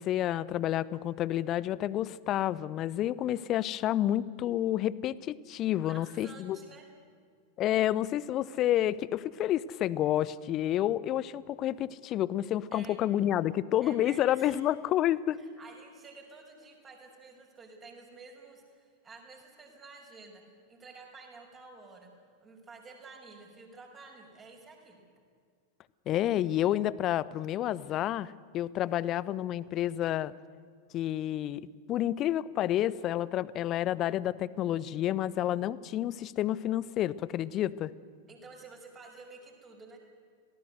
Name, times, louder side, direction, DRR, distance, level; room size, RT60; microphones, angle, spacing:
voice 1, 0.0-6.6 7.6-15.4 26.1-30.3 30.9-37.9, left 12 dB, 35° left, 20 dB, 0.7 m, -29 dB
voice 2, 5.8-6.8 12.7-13.0 13.8-14.6 15.4-20.4 20.7-22.1 22.4-25.0 38.3-40.0, right 4 dB, 20° right, 1 dB, 5.5 m, -51 dB
26.0 x 18.0 x 8.0 m, 2.1 s
figure-of-eight pair, 90°, 0 cm